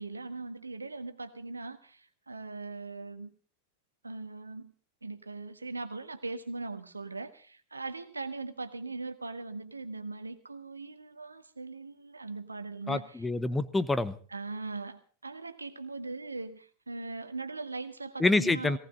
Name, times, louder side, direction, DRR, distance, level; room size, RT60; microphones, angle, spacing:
voice 1, 0.0-3.3 4.0-4.7 5.0-13.3 14.3-18.8, right 3 dB, 80° right, 10 dB, 1.5 m, -40 dB
voice 2, 12.9-14.2 18.2-18.8, left 2 dB, 10° left, 14 dB, 1.0 m, -27 dB
18.5 x 18.0 x 3.9 m, 0.42 s
figure-of-eight pair, 90°, 0 cm